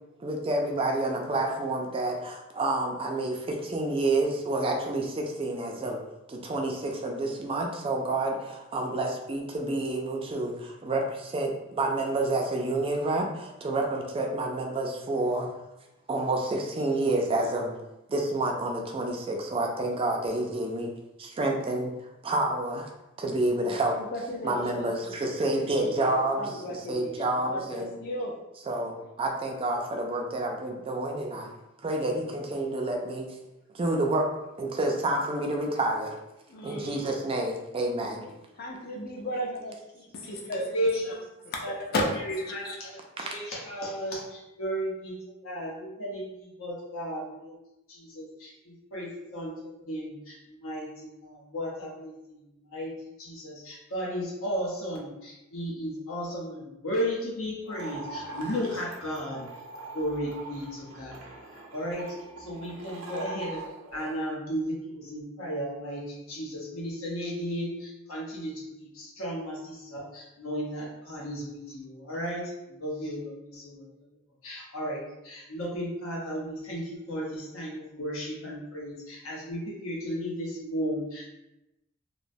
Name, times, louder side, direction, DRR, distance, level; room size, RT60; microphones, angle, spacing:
voice 1, 0.2-6.0 6.3-15.5 16.1-17.8 18.1-20.9 21.2-21.9 22.2-22.9 23.2-23.9 24.4-26.5 26.9-27.9 28.7-31.5 31.8-33.3 33.7-34.3 34.6-36.2 36.6-38.2, right 2 dB, 25° right, 1 dB, 0.3 m, -29 dB
voice 2, 24.0-25.5 25.7-28.4 36.5-37.1 38.2-40.7 41.1-41.2 41.4-42.8, equal, 45° left, 0 dB, 0.4 m, -35 dB
voice 3, 40.7-41.2 41.6-41.7 42.3-42.9 43.2-47.6 47.9-59.5 59.9-61.2 61.7-63.6 63.9-73.8 74.4-81.3, equal, 85° left, -3 dB, 0.8 m, -34 dB
sound 1, 57.6-64.2, right 3 dB, 85° right, 0.7 m, -42 dB
2.9 x 2.1 x 2.6 m, 0.93 s
head